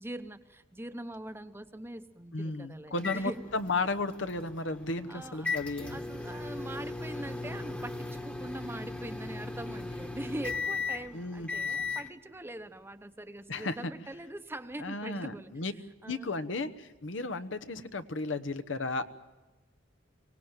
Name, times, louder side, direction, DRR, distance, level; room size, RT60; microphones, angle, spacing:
voice 1, 0.0-3.4 5.1-5.5 5.9-15.5 16.0-16.3, right 1 dB, 10° right, 9 dB, 0.9 m, -42 dB
voice 2, 2.3-6.0 11.1-12.0 13.5-13.9 14.8-15.7 16.0-19.0, left 3 dB, 70° left, 10 dB, 1.1 m, -34 dB
sound 1, 3.0-12.1, left 4 dB, 5° left, 1.3 m, -37 dB
24.5 x 18.5 x 9.0 m, 1.2 s
head